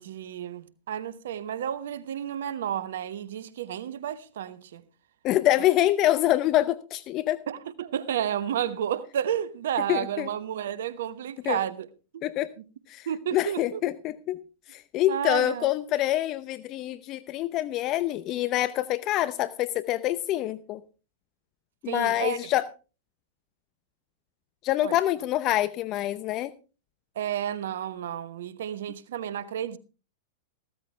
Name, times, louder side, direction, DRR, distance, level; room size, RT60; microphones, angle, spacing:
voice 1, 0.0-4.8 7.5-11.9 12.1-12.2 13.1-13.8 15.1-15.7 21.9-22.4 24.8-25.0 27.2-29.8, right 10 dB, 70° right, 1.1 m, -31 dB
voice 2, 5.2-7.4 9.9-10.3 11.5-11.6 12.2-12.5 12.9-14.4 14.7-20.8 21.8-22.7 24.6-26.5, left 14 dB, 40° left, 0.7 m, -26 dB
15.5 x 13.0 x 3.3 m
hypercardioid pair, 105°, 0 cm